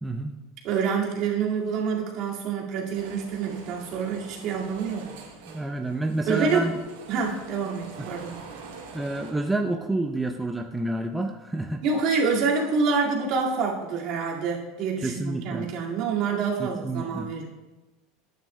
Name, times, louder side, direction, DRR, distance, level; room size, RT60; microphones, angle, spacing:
voice 1, 0.0-0.3 5.5-6.8 8.0-8.1 8.9-11.8 15.0-15.7 16.6-17.3, right 2 dB, 10° right, 4 dB, 0.6 m, -29 dB
voice 2, 0.6-5.1 6.3-6.7 7.1-8.5 11.8-17.5, right 5 dB, 60° right, -2 dB, 2.0 m, -27 dB
sound 1, 2.9-9.3, right 5 dB, 80° right, 1.5 m, -45 dB
11.5 x 9.2 x 2.2 m, 1.1 s
hypercardioid pair, 95°, 0 cm